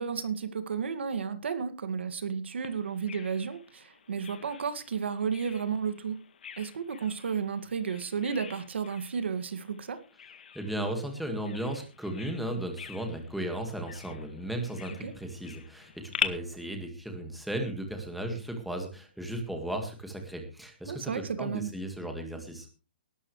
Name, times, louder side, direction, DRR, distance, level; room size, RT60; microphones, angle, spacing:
voice 1, 0.0-6.2 6.6-10.0 15.0-15.1 20.8-21.7, right 6 dB, 80° right, 10 dB, 2.1 m, -32 dB
Bird vocalization bird call bird song, 2.6-16.3, left 8 dB, 60° left, 1.8 m, -43 dB
voice 2, 10.5-22.7, right 1 dB, ahead, 3 dB, 1.9 m, -35 dB
18.5 x 12.5 x 3.2 m, 0.33 s
hypercardioid pair, 175°, 6 cm